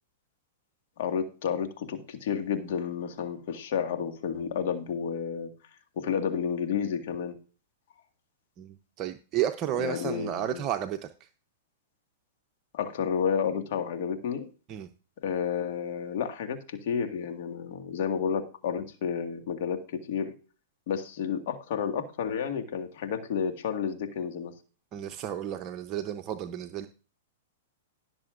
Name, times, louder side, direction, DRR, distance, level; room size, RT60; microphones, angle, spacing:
voice 1, 1.0-5.5 6.0-7.3 9.8-10.6 12.7-14.5 15.2-20.3 20.9-24.5, left 7 dB, 60° left, 5 dB, 1.9 m, -31 dB
voice 2, 8.6-11.3 14.7-14.9 24.9-26.9, right 11 dB, 35° right, 6 dB, 0.8 m, -32 dB
18.0 x 6.9 x 2.6 m, 0.37 s
hypercardioid pair, 120°, 0 cm